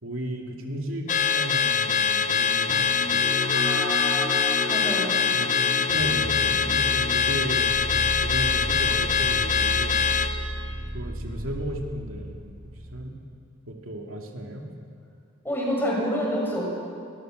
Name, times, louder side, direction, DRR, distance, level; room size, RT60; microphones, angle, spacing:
voice 1, 0.0-3.3 5.3-5.5 5.8-7.7 8.2-10.1 10.9-12.4 12.9-13.2 13.7-14.7, right 1 dB, 75° right, 1 dB, 2.9 m, -34 dB
Car / Alarm, 1.1-10.3, left 7 dB, 40° left, 1.2 m, -23 dB
sound 1, 2.7-11.5, left 1 dB, 15° right, 5.8 m, -36 dB
voice 2, 4.7-5.1 15.4-16.7, equal, 10° left, -3 dB, 6.9 m, -27 dB
sound 2, 5.9-13.1, right 1 dB, 50° right, 5.4 m, -34 dB
25.0 x 22.0 x 6.8 m, 2.3 s
head